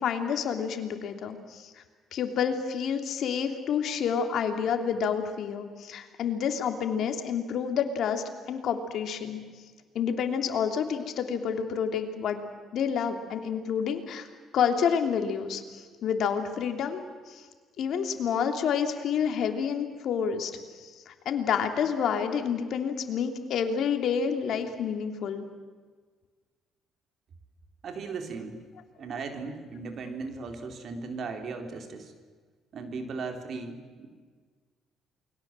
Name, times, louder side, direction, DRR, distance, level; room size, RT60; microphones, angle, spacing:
voice 1, 0.0-1.7 2.1-9.4 9.9-12.4 12.7-14.3 14.5-17.4 17.8-25.5, left 7 dB, 65° left, 6 dB, 3.1 m, -29 dB
voice 2, 27.8-28.6 29.0-32.1 32.7-34.1, right 4 dB, 55° right, 5 dB, 4.0 m, -37 dB
29.0 x 22.0 x 7.7 m, 1.5 s
cardioid pair, 85°, 0 cm